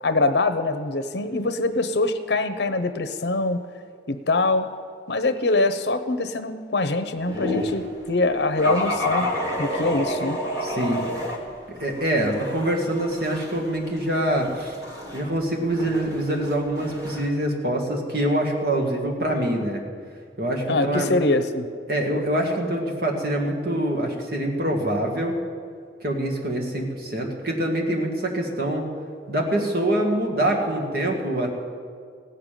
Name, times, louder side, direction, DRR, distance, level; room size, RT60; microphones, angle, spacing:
voice 1, 0.0-3.6 4.1-4.7 5.1-9.3 9.6-10.4 20.7-21.7, left 2 dB, 70° left, 10 dB, 0.8 m, -23 dB
sound 1, 7.3-7.9 8.6-11.4 11.8-17.3, left 1 dB, 20° right, 1.7 m, -30 dB
voice 2, 10.6-11.0 11.7-14.8 15.1-19.8 20.4-21.1 21.9-25.4 26.0-28.9 29.3-31.5, right 1 dB, 55° right, 0 dB, 1.9 m, -25 dB
16.0 x 6.8 x 9.1 m, 2.1 s
head